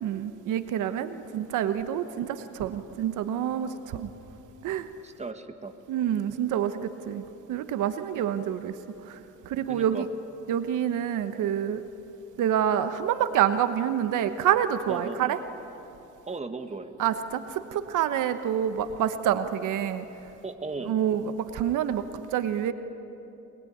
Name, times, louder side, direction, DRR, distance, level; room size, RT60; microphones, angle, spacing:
voice 1, 0.0-4.1 4.6-4.9 5.9-7.2 7.5-8.7 9.1-9.2 9.5-10.1 10.5-11.8 12.4-15.4 17.0-20.0 20.9-22.0 22.3-22.7, right 10 dB, 85° right, 10 dB, 1.2 m, -27 dB
voice 2, 5.0-5.7 9.7-10.1 14.9-15.4 16.3-16.9 20.4-21.0, right 3 dB, 20° right, 8 dB, 1.7 m, -37 dB
23.5 x 21.5 x 9.5 m, 3.0 s
cardioid pair, 90°, 30 cm